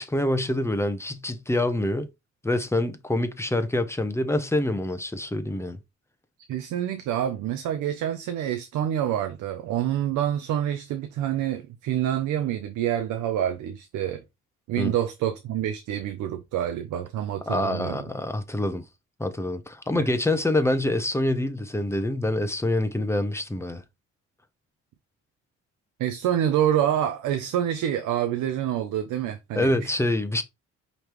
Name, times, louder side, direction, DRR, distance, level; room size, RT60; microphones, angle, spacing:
voice 1, 0.0-2.1 2.4-5.8 14.8-14.9 17.5-18.8 19.2-23.8 29.5-30.4, left 1 dB, 10° left, 0.8 m, -26 dB
voice 2, 6.5-14.2 14.7-18.0 19.9-20.0 26.0-29.9, right 11 dB, 85° right, 0.6 m, -27 dB
5.2 x 3.2 x 3.0 m
cardioid pair, 80°, 29 cm